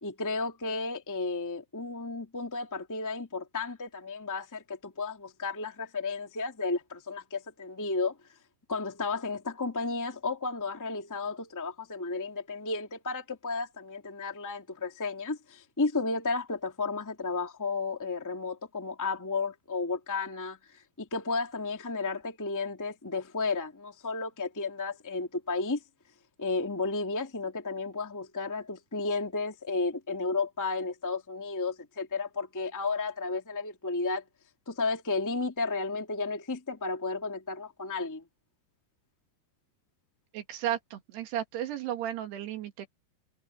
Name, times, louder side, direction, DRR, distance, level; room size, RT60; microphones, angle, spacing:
voice 1, 0.0-8.2 8.7-25.8 26.4-34.2 34.6-38.2, left 3 dB, 10° left, 1.0 m, -33 dB
voice 2, 40.3-42.9, right 11 dB, 70° right, 4.0 m, -34 dB
omnidirectional pair, 5.0 m